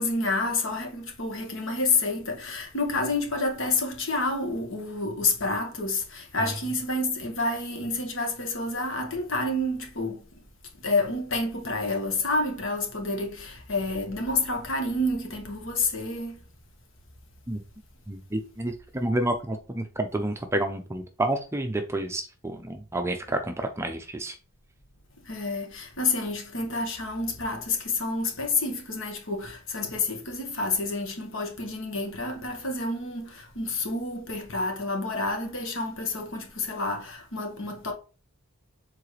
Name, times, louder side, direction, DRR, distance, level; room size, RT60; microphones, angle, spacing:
voice 1, 0.0-10.3 10.8-16.4 25.2-37.9, left 2 dB, 60° left, 1.5 m, -29 dB
voice 2, 18.1-24.4, right 1 dB, 10° right, 0.5 m, -29 dB
7.3 x 4.0 x 3.2 m
head